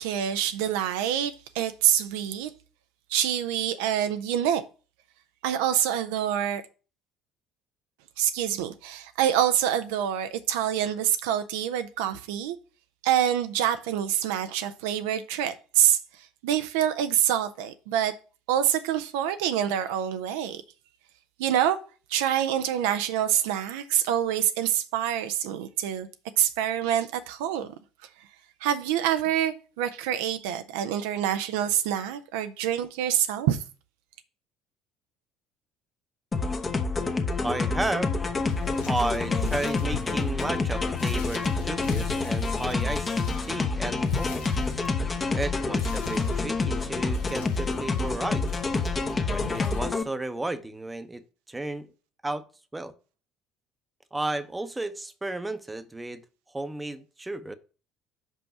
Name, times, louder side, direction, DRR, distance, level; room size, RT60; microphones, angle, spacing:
voice 1, 0.0-2.5 3.1-4.6 5.4-6.6 8.2-12.6 13.0-16.0 16.4-18.1 18.5-20.6 21.4-21.8 22.1-26.1 26.4-27.7 28.6-33.6, right 10 dB, 70° right, 0.5 m, -26 dB
sound 1, 36.3-50.0, left 3 dB, 25° left, 0.9 m, -28 dB
voice 2, 37.4-38.4 38.9-44.4 45.3-48.5 49.3-51.9 52.2-52.5 52.7-52.9 54.1-56.2 56.5-57.5, right 2 dB, 15° right, 0.8 m, -33 dB
sound 2, 38.5-49.9, left 6 dB, 70° left, 1.1 m, -39 dB
5.5 x 5.3 x 5.7 m
figure-of-eight pair, 60°, 0 cm